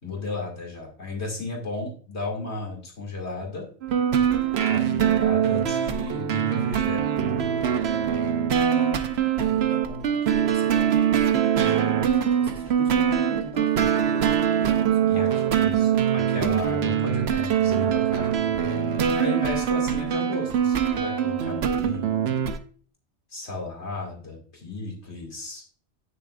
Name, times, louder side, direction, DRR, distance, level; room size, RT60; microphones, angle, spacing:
voice 1, 0.0-3.7 4.4-7.1 15.1-15.3 15.6-18.4 19.2-22.4 23.3-25.6, left 3 dB, 70° left, -1 dB, 2.7 m, -34 dB
sound 1, 3.8-22.6, right 9 dB, 70° right, 1.0 m, -23 dB
voice 2, 9.2-16.0 18.7-19.5, left 2 dB, 5° right, 0 dB, 1.3 m, -42 dB
9.0 x 6.8 x 2.4 m, 0.43 s
omnidirectional pair, 1.2 m